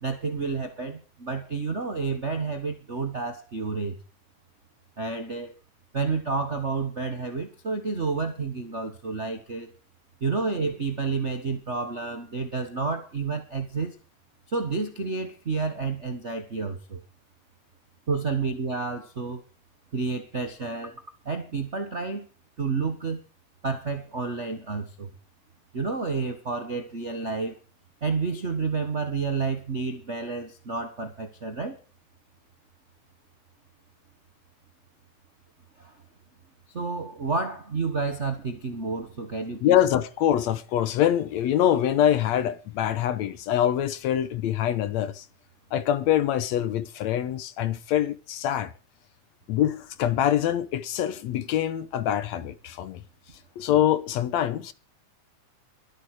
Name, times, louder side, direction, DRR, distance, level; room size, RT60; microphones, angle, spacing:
voice 1, 0.0-4.0 5.0-5.5 5.9-9.7 10.2-14.0 14.5-17.0 18.1-19.4 19.9-22.3 22.6-23.2 23.6-25.1 25.7-27.6 28.0-31.8 35.8-36.0 36.7-39.7, right 4 dB, 55° right, 0.7 m, -30 dB
voice 2, 39.6-45.3 45.7-48.7 49.5-53.0 53.6-54.7, left 11 dB, 70° left, 1.9 m, -24 dB
22.5 x 8.2 x 4.8 m
omnidirectional pair, 3.6 m